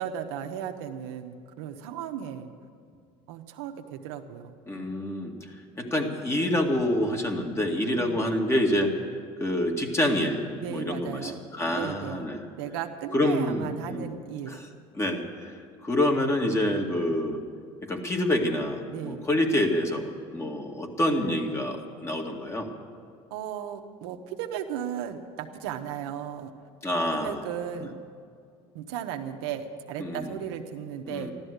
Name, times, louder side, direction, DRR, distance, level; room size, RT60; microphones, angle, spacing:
voice 1, 0.0-2.5 3.3-4.5 7.9-8.3 10.5-11.4 11.7-12.3 12.6-14.6 18.9-19.3 23.3-26.5 27.1-27.9 28.7-31.3, right 9 dB, 90° right, 5 dB, 1.1 m, -35 dB
voice 2, 4.7-5.3 5.8-8.9 9.4-11.3 11.6-12.5 13.1-14.1 14.5-14.6 14.9-17.4 17.9-22.7 26.8-27.4 30.0-30.4 31.1-31.3, left 1 dB, 20° left, 2 dB, 2.2 m, -27 dB
14.0 x 12.5 x 8.1 m, 2.2 s
supercardioid pair, 95°, 13 cm